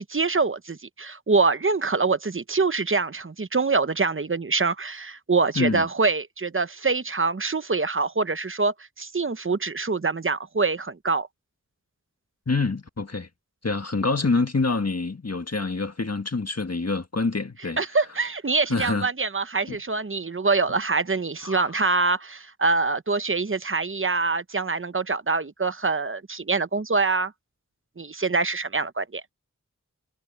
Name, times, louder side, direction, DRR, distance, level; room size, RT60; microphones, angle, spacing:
voice 1, 0.0-11.3 17.8-27.3 28.0-29.2, right 4 dB, 40° right, 0.8 m, -25 dB
voice 2, 5.6-5.9 12.5-13.3 13.6-17.8 18.7-19.1 19.7-19.8 21.4-21.7, left 3 dB, 55° left, 1.6 m, -26 dB
wide cardioid pair, 50°, 31 cm